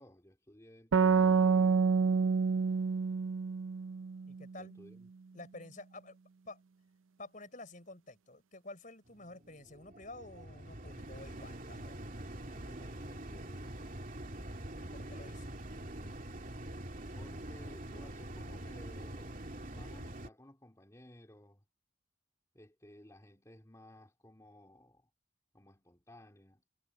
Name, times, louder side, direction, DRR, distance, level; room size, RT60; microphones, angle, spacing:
voice 1, 0.0-1.8 4.6-5.1 12.5-14.0 17.1-21.6 22.5-25.1 25.5-26.6, left 1 dB, 15° left, 2.7 m, -57 dB
sound 1, 0.9-4.4, right 5 dB, 70° right, 0.5 m, -28 dB
voice 2, 4.2-4.8 5.3-6.2 6.4-6.6 7.2-12.0 14.9-15.5, left 2 dB, 40° left, 5.0 m, -50 dB
sound 2, 9.1-20.3, right 1 dB, 40° right, 2.8 m, -45 dB
head